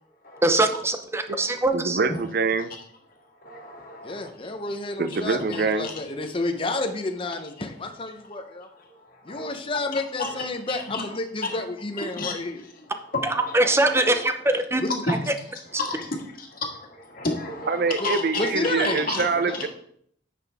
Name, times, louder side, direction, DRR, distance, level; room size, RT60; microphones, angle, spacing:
voice 1, 0.4-2.0 13.2-14.8 15.1-15.2, right 2 dB, 15° right, 7 dB, 0.7 m, -22 dB
voice 2, 1.7-2.7 5.0-5.9 17.7-19.7, right 4 dB, 55° right, 11 dB, 0.5 m, -25 dB
voice 3, 3.4-4.3 5.8-5.9 8.8-8.9 9.2-9.6 10.2-11.0 11.4-11.5 12.2-12.4 13.1-14.2 15.1-15.2 15.8-18.5 18.8-19.2 19.5-19.6, left 2 dB, 55° left, 1 dB, 1.7 m, -32 dB
voice 4, 4.0-8.7 9.2-12.6 14.8-15.0 18.0-18.1 18.4-19.7, left 2 dB, 30° left, 5 dB, 0.7 m, -30 dB
9.6 x 6.1 x 3.4 m, 0.66 s
head